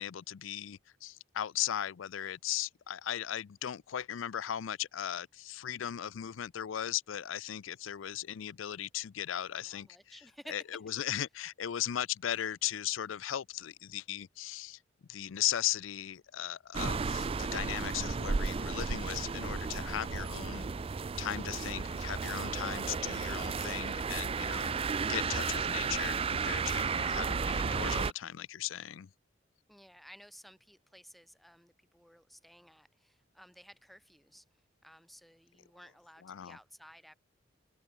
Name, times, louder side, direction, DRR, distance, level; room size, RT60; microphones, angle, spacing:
voice 1, 0.0-10.2 10.5-14.8 15.1-20.7 21.2-24.7 25.1-29.1 36.2-36.6, left 11 dB, 90° left, 0.4 m, -37 dB
voice 2, 9.6-10.6 29.7-34.4 34.8-37.2, equal, ahead, 5.5 m, -55 dB
sound 1, 16.7-28.1, right 5 dB, 30° right, 0.4 m, -33 dB
head